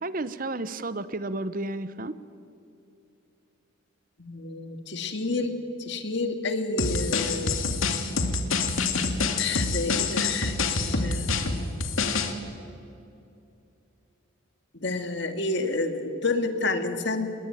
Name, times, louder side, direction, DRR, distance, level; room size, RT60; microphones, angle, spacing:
voice 1, 0.0-2.2, right 2 dB, 40° right, 14 dB, 0.9 m, -32 dB
voice 2, 4.2-7.6 9.4-11.8 14.7-17.3, left 3 dB, 60° left, 7 dB, 2.2 m, -30 dB
sound 1, 6.8-12.3, left 4 dB, 90° left, 2.4 m, -26 dB
27.5 x 21.5 x 9.2 m, 2.7 s
head